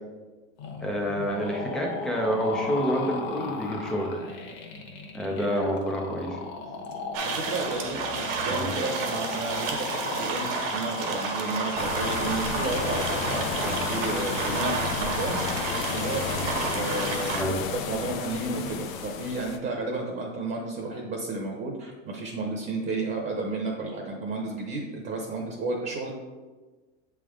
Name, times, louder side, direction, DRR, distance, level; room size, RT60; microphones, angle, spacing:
sound 1, 0.6-16.5, left 4 dB, 50° left, 1.1 m, -37 dB
voice 1, 0.8-4.3 5.1-6.4 8.5-8.7 17.3-17.5, equal, ahead, -1 dB, 0.3 m, -28 dB
sound 2, 7.1-17.4, right 4 dB, 70° right, 1.4 m, -31 dB
voice 2, 7.2-15.4 15.9-17.6 17.9-26.1, right 3 dB, 30° right, 0 dB, 0.8 m, -32 dB
sound 3, 11.8-19.6, left 6 dB, 85° left, 0.7 m, -32 dB
7.4 x 3.5 x 3.7 m, 1.3 s
supercardioid pair, 140°, 39 cm